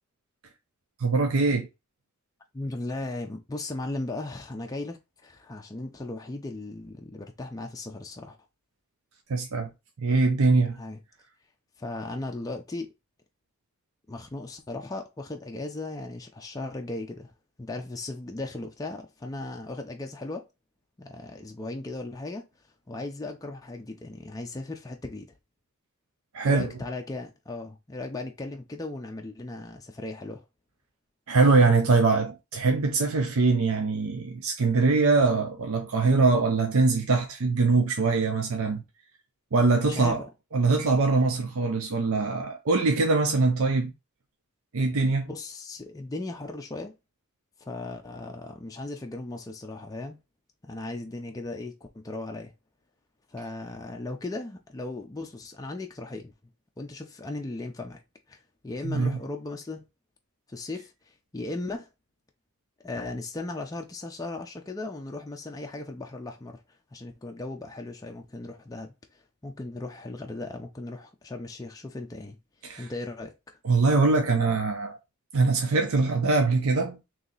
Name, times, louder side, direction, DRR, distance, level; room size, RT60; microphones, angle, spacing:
voice 1, 1.0-1.7 9.3-9.7 10.0-10.8 26.3-26.7 31.3-38.8 39.5-40.2 40.5-43.9 44.7-45.3 58.8-59.2 72.6-72.9 73.6-75.0 75.3-77.0, right 3 dB, 65° right, 0.6 m, -23 dB
voice 2, 2.5-8.4 10.8-11.0 11.8-12.9 14.1-17.3 17.6-20.5 21.0-22.5 22.9-25.4 26.4-30.4 39.8-40.3 45.3-46.9 47.6-50.2 50.6-52.5 53.3-56.3 56.8-58.0 58.3-59.9 60.5-61.9 62.8-66.6 66.9-72.4 72.8-73.6, left 2 dB, 15° left, 0.4 m, -37 dB
3.1 x 2.7 x 3.8 m
head